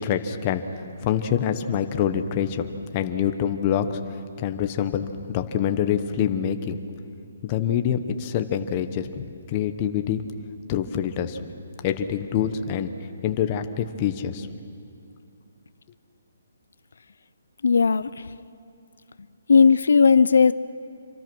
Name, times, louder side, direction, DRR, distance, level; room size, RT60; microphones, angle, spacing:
voice 1, 0.0-6.8 7.4-10.2 10.7-11.4 11.8-12.9 13.2-14.5, left 9 dB, 20° left, 8 dB, 0.9 m, -26 dB
voice 2, 17.6-18.1 19.5-20.5, left 5 dB, 75° left, 16 dB, 0.6 m, -16 dB
27.0 x 24.0 x 6.2 m, 2.7 s
hypercardioid pair, 175°, 0 cm